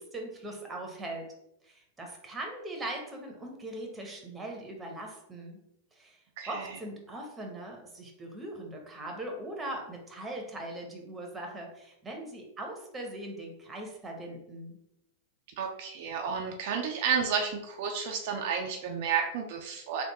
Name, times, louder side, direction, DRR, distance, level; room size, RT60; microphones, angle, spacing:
voice 1, 0.0-1.3 1.6-5.6 5.9-14.8, right 1 dB, 15° right, 1 dB, 1.0 m, -40 dB
voice 2, 6.4-6.7 15.6-20.0, right 6 dB, 60° right, 3 dB, 0.5 m, -31 dB
3.5 x 2.5 x 4.1 m, 0.83 s
hypercardioid pair, 105°, 0 cm